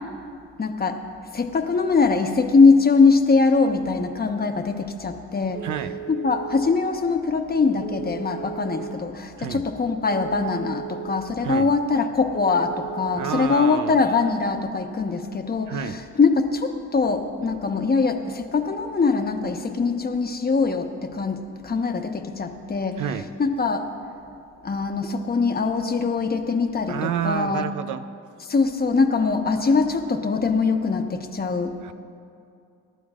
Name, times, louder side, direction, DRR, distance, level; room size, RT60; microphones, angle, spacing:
voice 1, 0.6-1.0 1.3-5.7 6.1-23.0 23.4-23.9 24.6-27.6 28.5-31.8, left 4 dB, 30° left, 5 dB, 1.1 m, -22 dB
Telephone, 5.6-6.7 7.8-8.9 10.1-11.2 12.3-13.4, right 10 dB, 25° right, 0.8 m, -36 dB
voice 2, 5.6-5.9 9.4-9.6 11.4-11.7 13.1-14.0 15.7-16.0 23.0-23.3 26.9-28.0 31.8-31.9, right 9 dB, 80° right, 10 dB, 0.7 m, -29 dB
27.0 x 11.5 x 2.5 m, 2.5 s
cardioid pair, 90°, 30 cm